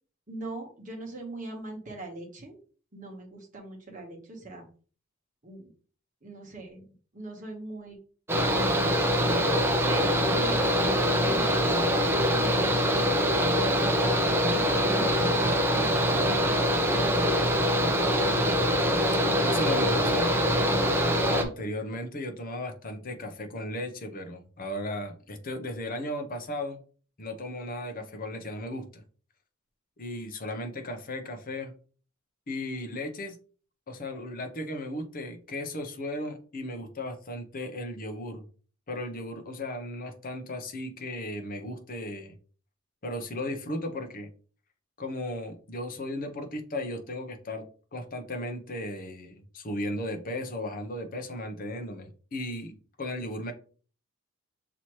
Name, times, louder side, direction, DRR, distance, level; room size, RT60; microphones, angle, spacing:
voice 1, 0.3-2.6 2.9-4.6 5.4-5.7 6.2-6.8 7.1-8.0 8.5-9.4 9.8-13.3 13.8-16.9, right 3 dB, 40° right, 0 dB, 1.2 m, -41 dB
Mechanical fan, 8.3-21.4, equal, 10° right, 0.6 m, -24 dB
voice 2, 18.3-18.8 19.4-20.3 20.8-21.0 21.3-26.8 27.2-29.0 30.0-31.7 32.5-33.4 33.9-38.4 38.9-42.3 43.0-44.3 45.0-47.6 47.9-53.5, left 1 dB, 45° left, 6 dB, 0.8 m, -35 dB
6.0 x 2.9 x 3.0 m, 0.41 s
head